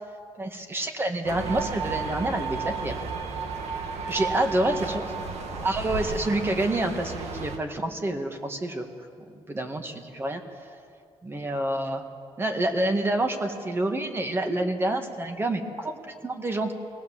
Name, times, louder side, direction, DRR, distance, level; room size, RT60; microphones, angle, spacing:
voice 1, 0.4-3.0 4.1-5.0 5.6-8.9 9.3-10.4 11.2-12.0 12.4-16.7, right 1 dB, 20° right, 5 dB, 1.8 m, -28 dB
sound 1, 1.2-7.6, right 4 dB, 85° right, 2.0 m, -33 dB
24.5 x 18.0 x 7.4 m, 2.4 s
wide cardioid pair, 145°, 11 cm